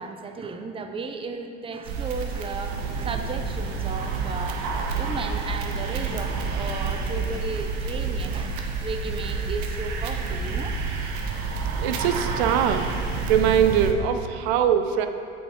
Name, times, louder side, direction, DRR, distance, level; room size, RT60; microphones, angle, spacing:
voice 1, 0.0-4.7 5.0-11.1, right 4 dB, 20° right, 6 dB, 0.5 m, -35 dB
sound 1, 1.9-13.9, right 4 dB, 65° right, 0.9 m, -29 dB
voice 2, 11.8-12.8 13.3-15.1, right 9 dB, 80° right, 8 dB, 0.5 m, -22 dB
8.0 x 5.1 x 3.6 m, 2.5 s
hypercardioid pair, 85°, 31 cm